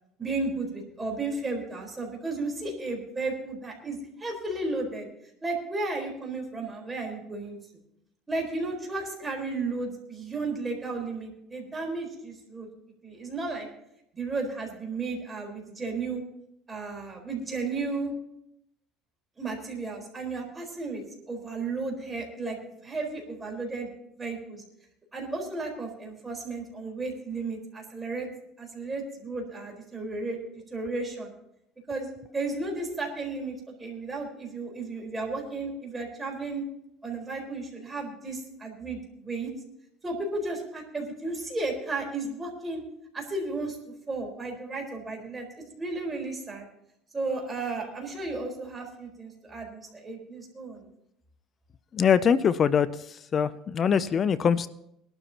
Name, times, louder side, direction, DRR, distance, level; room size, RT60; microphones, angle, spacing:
voice 1, 0.2-5.1 5.4-7.6 8.3-12.7 13.0-13.7 14.1-16.2 16.7-18.1 19.4-22.6 22.8-23.9 24.2-24.6 25.1-28.3 28.6-30.4 30.7-31.3 31.9-36.6 37.0-39.5 40.0-42.8 43.1-43.8 44.1-46.6 47.1-50.9, right 3 dB, 15° right, 1 dB, 4.4 m, -34 dB
voice 2, 51.9-54.7, left 7 dB, 35° left, 16 dB, 0.5 m, -23 dB
22.0 x 12.5 x 3.0 m, 0.79 s
supercardioid pair, 115°, 0 cm